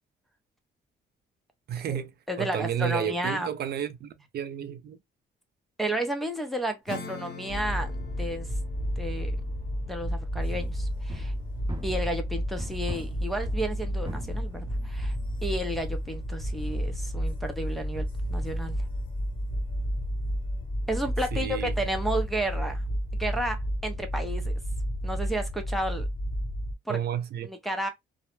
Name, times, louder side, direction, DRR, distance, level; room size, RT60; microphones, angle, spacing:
voice 1, 1.7-2.1 2.4-5.0 21.3-21.7 26.9-27.5, right 9 dB, 55° right, 0.4 m, -31 dB
voice 2, 2.3-3.5 5.8-8.5 9.0-9.4 9.9-11.3 11.8-15.1 15.4-18.0 18.3-18.8 20.9-22.9 23.2-24.5 25.0-26.1 26.9-27.0 27.4-27.9, right 1 dB, ahead, 0.6 m, -32 dB
Acoustic guitar / Strum, 6.9-12.9, left 5 dB, 60° left, 0.7 m, -45 dB
sound 1, 7.5-26.7, equal, 25° left, 0.9 m, -31 dB
sound 2, 10.5-12.3 12.6-18.4, right 1 dB, 20° right, 0.9 m, -44 dB
2.0 x 2.0 x 3.0 m
cardioid pair, 90°, 20 cm